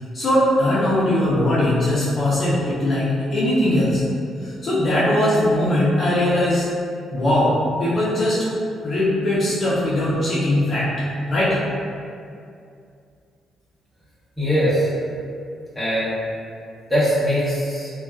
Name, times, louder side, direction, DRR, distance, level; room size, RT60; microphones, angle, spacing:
voice 1, 0.1-4.0 4.4-6.6 7.1-7.5 7.8-8.4 8.8-10.9 11.3-11.6, left 1 dB, 45° left, -8 dB, 0.5 m, -20 dB
voice 2, 14.4-14.9 15.7-16.2 16.9-17.9, equal, ahead, -11 dB, 1.0 m, -21 dB
2.5 x 2.2 x 2.2 m, 2.4 s
cardioid pair, 90°, 0 cm